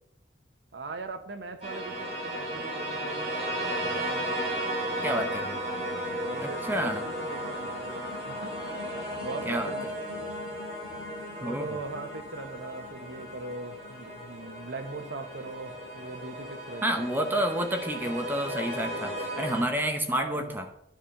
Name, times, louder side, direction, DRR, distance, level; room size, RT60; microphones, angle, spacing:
voice 1, 0.7-4.5 4.8-5.4 6.2-8.6 9.2-10.2 11.4-17.1 20.1-20.5, right 3 dB, 85° right, 8 dB, 0.8 m, -41 dB
sound 1, 1.6-19.6, equal, 35° right, 3.6 m, -35 dB
voice 2, 5.0-5.6 6.4-7.0 9.5-9.7 11.4-11.8 16.8-20.7, right 1 dB, 10° right, 4 dB, 0.8 m, -29 dB
10.5 x 5.1 x 5.6 m, 0.81 s
head